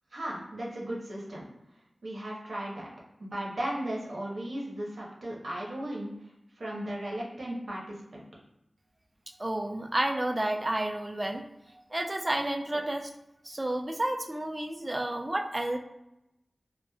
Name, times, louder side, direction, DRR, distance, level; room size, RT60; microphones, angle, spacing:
voice 1, 0.1-1.5 2.0-2.9 3.2-6.1 6.6-8.2, right 1 dB, 75° right, -4 dB, 0.7 m, -36 dB
voice 2, 9.4-11.4 11.9-13.1 13.4-15.8, right 1 dB, 30° right, 4 dB, 0.3 m, -30 dB
2.9 x 2.0 x 2.2 m, 0.87 s
wide cardioid pair, 65°, 0 cm